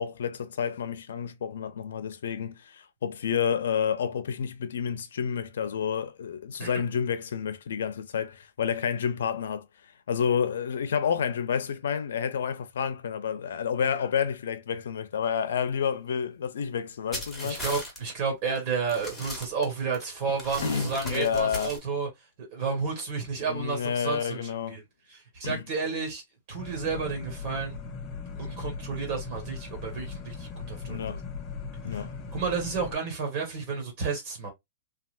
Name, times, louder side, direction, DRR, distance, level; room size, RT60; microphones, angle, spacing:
voice 1, 0.0-9.7 10.1-17.6 20.6-21.7 23.5-24.8 25.4-25.6 30.9-31.2 31.8-32.2, left 7 dB, 80° left, 0.6 m, -29 dB
sound 1, 17.1-18.0 18.4-18.6 18.9-20.0 20.4-21.8, left 1 dB, 5° left, 1.4 m, -37 dB
voice 2, 17.4-22.1 22.4-24.8 25.1-26.2 26.5-27.8 28.3-31.2 31.9-32.0 32.3-34.5, right 5 dB, 35° right, 1.4 m, -31 dB
sound 2, 26.6-32.9, left 5 dB, 25° left, 0.6 m, -39 dB
3.3 x 2.4 x 2.4 m
hypercardioid pair, 160°, 0 cm